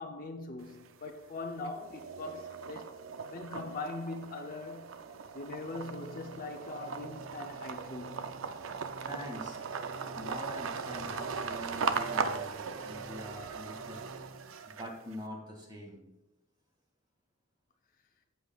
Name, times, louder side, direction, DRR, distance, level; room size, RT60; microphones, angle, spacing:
voice 1, 0.0-3.0 3.3-4.9 5.3-8.3, left 3 dB, 45° left, 0.7 m, -41 dB
sound 1, 0.6-1.2 1.6-15.2, right 5 dB, 70° right, 0.5 m, -38 dB
sound 2, 5.6-14.5, right 1 dB, 20° left, 1.8 m, -54 dB
voice 2, 9.1-9.6 10.2-14.0 14.7-16.0, equal, 20° right, 2.3 m, -44 dB
13.5 x 7.9 x 2.4 m
head